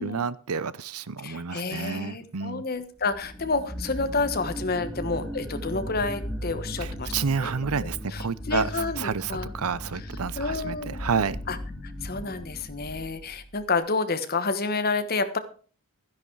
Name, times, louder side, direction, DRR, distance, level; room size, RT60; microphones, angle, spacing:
voice 1, 0.0-2.7 6.8-8.7 9.0-11.4, right 5 dB, 85° right, 0.7 m, -30 dB
voice 2, 1.2-7.1 7.4-7.5 8.1-9.5 10.4-11.0 11.5-11.6 12.0-15.4, left 3 dB, 45° left, 1.3 m, -29 dB
sound 1, 3.0-13.7, equal, ahead, 2.0 m, -37 dB
12.5 x 10.5 x 4.7 m
head